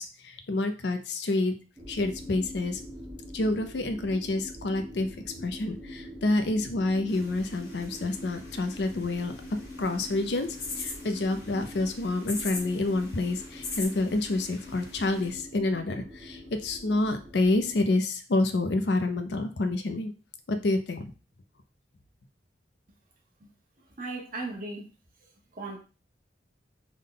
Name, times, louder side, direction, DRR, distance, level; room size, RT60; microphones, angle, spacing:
voice 1, 0.0-1.5 1.9-2.8 3.3-5.1 5.4-9.3 9.8-10.5 10.8-20.1 20.5-21.1, left 2 dB, 70° left, 7 dB, 0.5 m, -28 dB
sound 1, 1.8-17.9, left 1 dB, 30° right, 0.8 m, -44 dB
sound 2, 7.1-15.3, left 3 dB, 90° left, 1.4 m, -42 dB
voice 2, 24.0-24.8 25.5-25.8, right 2 dB, 50° right, 0 dB, 0.9 m, -36 dB
3.6 x 2.2 x 3.7 m, 0.33 s
head